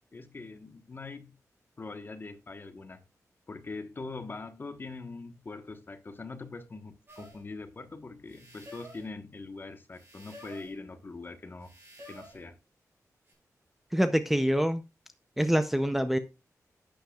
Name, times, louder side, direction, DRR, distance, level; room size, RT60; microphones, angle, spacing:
voice 1, 0.1-1.4 1.8-3.0 3.5-11.7 12.1-12.6, left 3 dB, 35° left, 1.1 m, -42 dB
sound 1, 7.1-7.4 8.3-9.1 9.9-10.8 11.6-12.4 13.3-13.4, equal, 40° right, 6.0 m, -50 dB
voice 2, 13.9-14.8 15.4-16.2, equal, 5° right, 0.5 m, -25 dB
11.0 x 8.8 x 2.3 m
wide cardioid pair, 155°, 6 cm